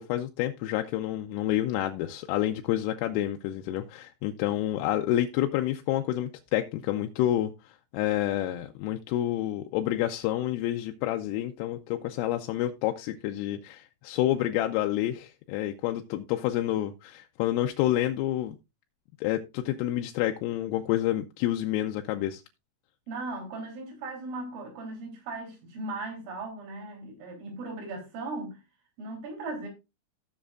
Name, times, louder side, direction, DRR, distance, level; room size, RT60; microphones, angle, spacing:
voice 1, 0.0-18.6 19.2-22.4, left 13 dB, 85° left, 3.3 m, -29 dB
voice 2, 23.1-28.6 29.0-29.7, right 2 dB, 75° right, 5.9 m, -37 dB
16.5 x 7.3 x 2.4 m
omnidirectional pair, 5.9 m